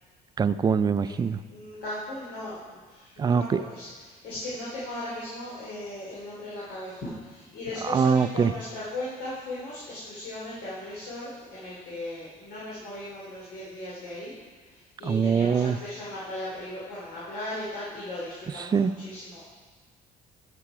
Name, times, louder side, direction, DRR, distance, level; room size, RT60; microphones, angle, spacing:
voice 1, 0.4-1.4 3.2-3.6 7.9-8.5 15.0-15.8 18.7-18.9, right 6 dB, 25° right, 13 dB, 0.4 m, -23 dB
voice 2, 1.5-14.3 14.7-19.4, left 1 dB, 80° left, -7 dB, 2.8 m, -37 dB
12.0 x 6.0 x 4.9 m, 1.4 s
cardioid pair, 110°, 17 cm